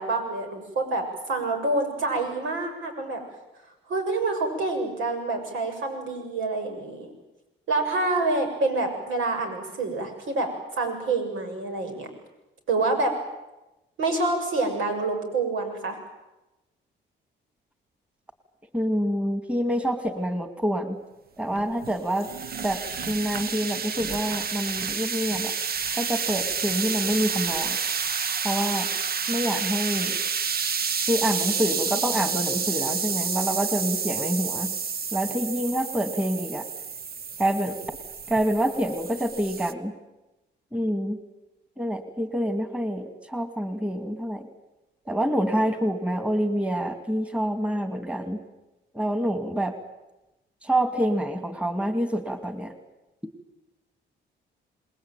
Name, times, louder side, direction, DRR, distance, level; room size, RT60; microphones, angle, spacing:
voice 1, 0.0-3.2 3.9-7.1 7.7-10.5 10.8-12.1 12.7-13.1 14.0-16.0, right 3 dB, 80° right, 4 dB, 7.1 m, -27 dB
voice 2, 18.7-21.0 21.4-22.3 22.6-22.8 23.1-25.5 25.9-27.8 28.4-28.9 29.3-30.2 31.1-34.7 35.1-36.6 37.4-37.8 38.3-39.9 40.7-41.2 41.8-44.5 45.1-48.4 48.9-49.7 50.6-52.7, equal, 5° right, 8 dB, 2.5 m, -27 dB
sound 1, 21.5-39.7, right 6 dB, 50° right, 1.2 m, -29 dB
27.5 x 20.5 x 9.1 m, 1.0 s
cardioid pair, 90°, 20 cm